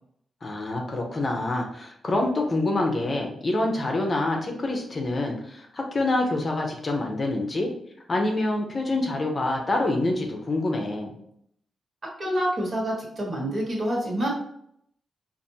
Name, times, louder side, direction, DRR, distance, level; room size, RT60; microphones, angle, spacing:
voice 1, 0.4-7.7 8.1-11.1, left 2 dB, 35° left, 1 dB, 0.7 m, -26 dB
voice 2, 12.2-14.3, equal, 45° right, -3 dB, 1.5 m, -27 dB
5.0 x 2.6 x 2.8 m, 0.71 s
cardioid pair, 105°, 0 cm